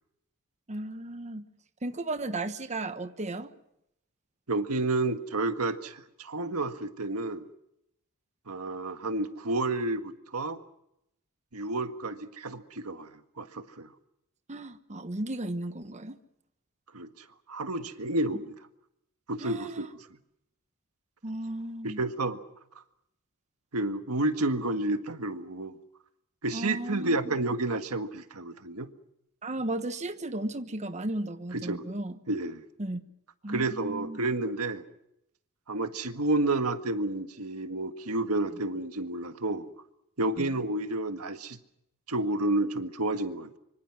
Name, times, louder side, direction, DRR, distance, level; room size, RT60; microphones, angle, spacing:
voice 1, 0.7-1.5 1.8-3.5 14.5-16.2 19.4-19.9 21.2-22.0 26.5-27.3 29.4-32.1 32.8-33.0 33.4-34.2 40.4-40.5, right 2 dB, 30° right, 9 dB, 1.2 m, -35 dB
voice 2, 4.5-7.4 8.5-10.6 11.5-13.1 13.4-13.9 16.9-17.1 17.5-18.5 19.3-19.9 21.8-22.4 23.7-25.8 26.4-28.9 31.5-31.8 32.3-32.6 33.5-34.8 35.7-39.7 40.2-41.6 42.1-43.6, right 2 dB, 85° right, 8 dB, 1.7 m, -30 dB
25.5 x 25.0 x 6.2 m, 0.81 s
head